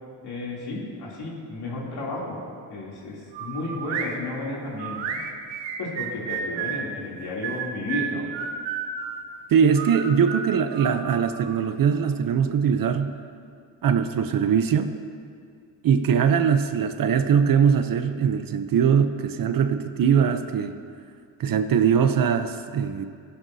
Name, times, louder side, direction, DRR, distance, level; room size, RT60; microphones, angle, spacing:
voice 1, 0.2-2.4 2.7-5.2 5.8-8.2, left 2 dB, 60° left, -5 dB, 3.0 m, -32 dB
sound 1, 3.3-4.1 4.8-6.9 7.4-9.2 9.7-11.6, right 7 dB, 80° right, 1.0 m, -32 dB
voice 2, 9.5-13.2 13.8-14.9 15.8-20.7 21.4-23.0, right 7 dB, 50° right, 9 dB, 0.7 m, -21 dB
15.0 x 11.0 x 2.7 m, 2.2 s
cardioid pair, 105°, 44 cm